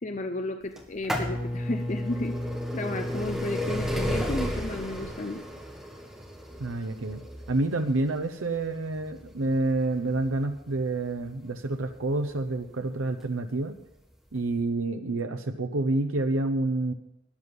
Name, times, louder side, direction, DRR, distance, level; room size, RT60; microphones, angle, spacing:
voice 1, 0.0-2.4 2.7-5.4, left 2 dB, 35° left, 6 dB, 0.7 m, -33 dB
sound 1, 0.8-12.4 13.2-13.3 14.3-14.4 14.6-14.7, equal, ahead, 1.8 m, -33 dB
voice 2, 6.6-7.2 7.5-13.7 14.3-16.9, right 2 dB, 80° right, 6 dB, 0.8 m, -28 dB
13.0 x 9.8 x 5.4 m, 0.85 s
head